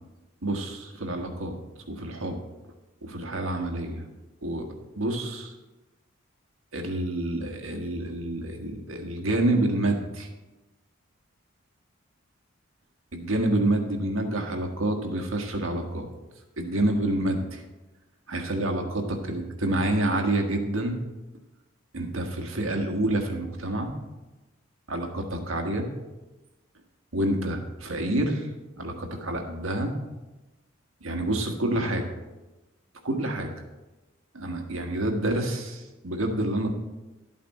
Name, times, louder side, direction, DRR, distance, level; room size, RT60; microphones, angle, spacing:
voice 1, 0.4-1.5 1.9-2.4 3.0-4.1 4.4-4.6 5.0-5.5 6.7-10.3 13.1-16.0 16.6-17.6 18.3-19.0 19.3-21.0 21.9-23.9 24.9-25.9 27.1-28.5 28.8-29.9 31.0-32.1 33.0-33.5 34.3-36.7, right 1 dB, 80° right, 4 dB, 1.5 m, -28 dB
12.0 x 8.5 x 4.3 m, 1.1 s
head